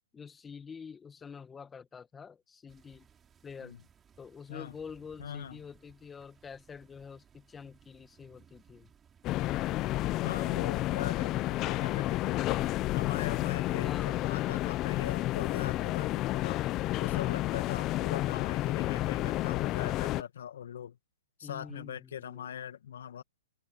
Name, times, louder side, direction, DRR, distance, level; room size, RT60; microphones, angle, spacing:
voice 1, 0.1-3.1 3.4-3.8 4.2-8.9 13.8-14.6 21.4-22.5, left 6 dB, 15° left, 1.8 m, -47 dB
sound 1, 2.7-12.3, right 7 dB, 20° right, 6.6 m, -63 dB
voice 2, 5.2-5.6 10.2-12.6 12.9-16.6 17.0-21.0 21.4-23.2, left 9 dB, 70° left, 1.7 m, -41 dB
sound 2, 9.2-20.2, left 16 dB, 30° left, 0.8 m, -31 dB
open air
hypercardioid pair, 130°, 0 cm